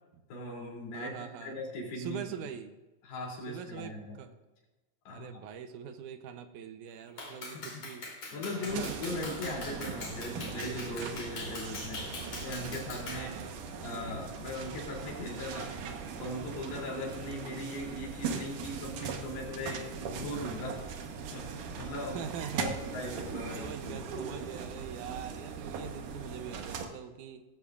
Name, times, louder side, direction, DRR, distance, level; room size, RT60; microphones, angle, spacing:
voice 1, 0.3-1.1 1.4-2.2 3.0-4.2 5.0-5.3 7.5-7.8 8.3-12.1 12.4-13.3 13.8-15.8 16.2-20.8 21.3-22.3 22.6-24.0, left 1 dB, 75° left, -2 dB, 5.1 m, -39 dB
voice 2, 0.9-1.6 2.0-2.7 3.5-4.4 5.1-8.1 8.5-9.1 13.1-13.5 22.1-22.7 23.6-27.4, right 8 dB, 80° right, 7 dB, 1.8 m, -43 dB
Clapping, 7.2-13.3, left 2 dB, 40° left, 4.2 m, -42 dB
sound 1, 8.7-26.9, right 5 dB, 65° right, 2.4 m, -40 dB
19.0 x 15.5 x 2.5 m, 1.1 s
omnidirectional pair, 4.6 m